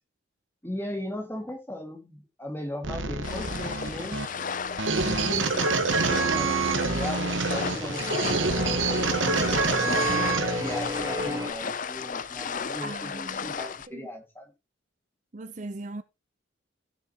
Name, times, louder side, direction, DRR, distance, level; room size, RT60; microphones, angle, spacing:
voice 1, 0.6-4.4 4.9-10.0 10.6-14.5, left 1 dB, 10° left, 2.0 m, -37 dB
sound 1, 2.8-10.8, right 4 dB, 70° right, 1.3 m, -27 dB
sound 2, 3.2-13.9, left 6 dB, 40° left, 0.5 m, -34 dB
sound 3, 6.2-11.5, left 2 dB, 15° right, 3.5 m, -34 dB
voice 2, 12.8-13.5 13.9-14.0 15.3-16.0, right 2 dB, 35° right, 0.6 m, -39 dB
16.0 x 6.6 x 2.9 m
head